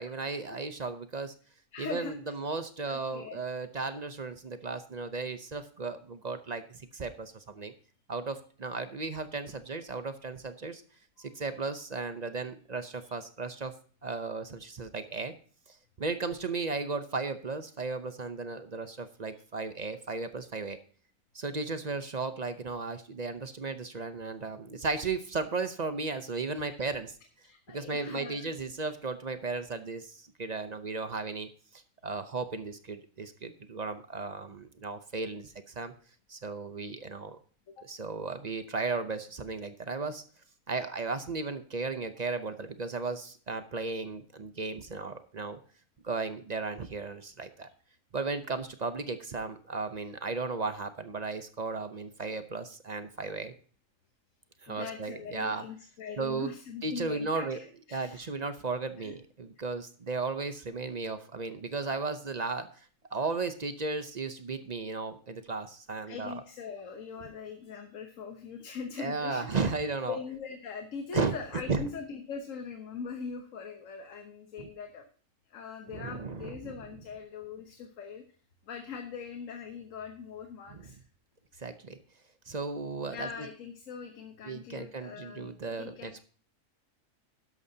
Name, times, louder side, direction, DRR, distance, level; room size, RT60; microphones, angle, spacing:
voice 1, 0.0-1.3 1.8-7.7 8.1-10.8 11.2-13.7 14.0-15.3 16.0-20.8 21.3-27.2 27.7-35.9 36.3-37.4 37.8-40.2 40.7-45.6 46.0-47.7 48.1-53.5 54.6-55.6 56.2-56.5 56.8-57.6 57.9-62.9 63.1-66.4 69.0-70.2 71.1-71.4 71.7-71.8 74.6-74.7 75.9-76.8 80.7-80.9 81.6-82.0 82.5-83.5 84.4-86.2, right 4 dB, 40° right, 10 dB, 0.7 m, -35 dB
voice 2, 1.7-2.1 2.9-3.4 11.2-11.3 26.6-26.8 27.5-28.5 37.8-37.9 54.7-58.3 59.0-59.1 66.1-69.6 70.1-75.1 75.5-78.2 78.7-81.0 83.1-86.2, left 5 dB, 75° left, 5 dB, 1.4 m, -41 dB
12.0 x 11.0 x 2.8 m, 0.42 s
omnidirectional pair, 1.4 m